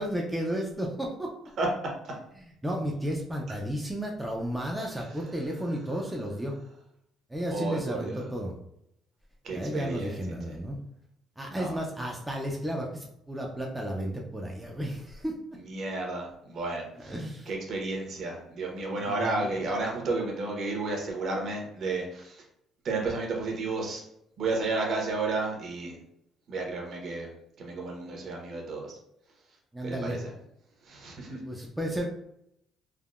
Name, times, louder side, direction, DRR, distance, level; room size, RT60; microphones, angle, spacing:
voice 1, 0.0-1.3 2.4-6.5 7.3-8.6 9.5-10.8 11.4-15.3 17.0-17.5 19.1-19.5 29.7-30.2 31.5-32.1, equal, 5° right, -1 dB, 0.3 m, -33 dB
voice 2, 5.0-6.3 7.5-8.3 9.4-10.6 11.5-11.8 15.5-22.4 22.8-24.0 24.4-26.0 26.5-27.3 27.6-29.0 29.8-30.3 30.8-31.4, right 3 dB, 55° right, 0 dB, 0.8 m, -33 dB
3.5 x 2.1 x 2.3 m, 0.77 s
cardioid pair, 135°, 0 cm